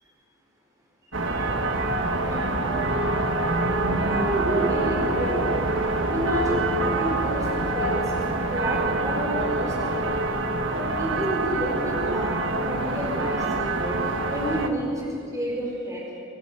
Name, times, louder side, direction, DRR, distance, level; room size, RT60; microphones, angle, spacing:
sound 1, 1.1-14.7, right 2 dB, 70° right, 1.5 m, -25 dB
voice 1, 2.2-2.6 4.1-5.4 6.1-8.1 8.5-10.0 10.6-12.3 12.7-14.0 14.3-16.0, equal, 15° right, -3 dB, 4.5 m, -29 dB
24.5 x 11.0 x 9.7 m, 2.6 s
head